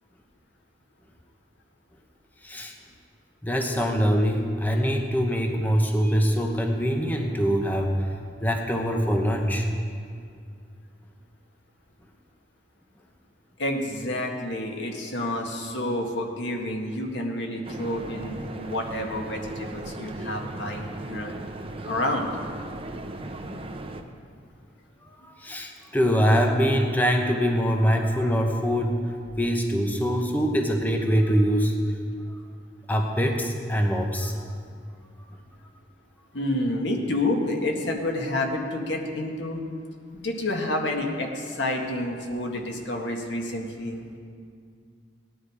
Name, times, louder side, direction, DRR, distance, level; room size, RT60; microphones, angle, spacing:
voice 1, 2.4-2.7 3.4-8.1 8.4-9.7 25.0-31.8 32.3-32.4 32.9-34.6, equal, 10° left, 2 dB, 0.9 m, -24 dB
voice 2, 13.6-21.3 21.9-22.3 36.3-39.6 40.1-44.2, left 1 dB, 80° left, 2 dB, 1.8 m, -29 dB
sound 1, 17.6-24.0, right 1 dB, 30° right, 0.9 m, -37 dB
17.5 x 10.5 x 4.9 m, 2.2 s
head